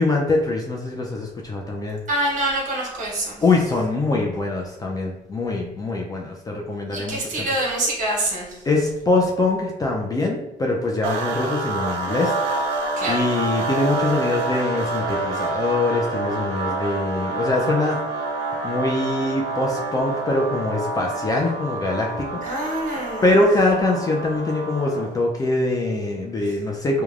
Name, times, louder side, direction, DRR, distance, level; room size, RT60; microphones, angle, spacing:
voice 1, 0.0-2.0 3.4-7.5 8.7-12.3 13.0-18.0 18.6-22.7 23.2-27.0, left 2 dB, 20° left, -1 dB, 0.4 m, -23 dB
voice 2, 2.1-3.4 6.9-8.6 13.0-13.2 22.4-23.4, right 1 dB, 50° right, -3 dB, 1.2 m, -25 dB
sound 1, 11.0-25.2, right 3 dB, 85° right, 0.5 m, -27 dB
3.2 x 2.2 x 2.4 m, 0.87 s
cardioid pair, 110°, 17 cm